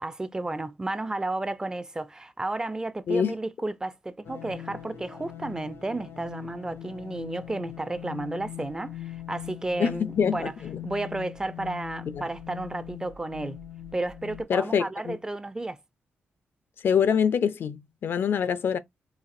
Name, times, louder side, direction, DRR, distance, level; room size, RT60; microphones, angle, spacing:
voice 1, 0.0-10.6 10.8-13.6 13.9-15.8, right 2 dB, 15° right, 0.3 m, -32 dB
sound 1, 4.2-14.4, left 11 dB, 80° left, 0.8 m, -41 dB
voice 2, 9.8-10.8 12.1-12.2 14.5-15.2 16.8-18.8, left 7 dB, 65° left, 0.4 m, -25 dB
4.1 x 2.5 x 2.5 m
cardioid pair, 95°, 4 cm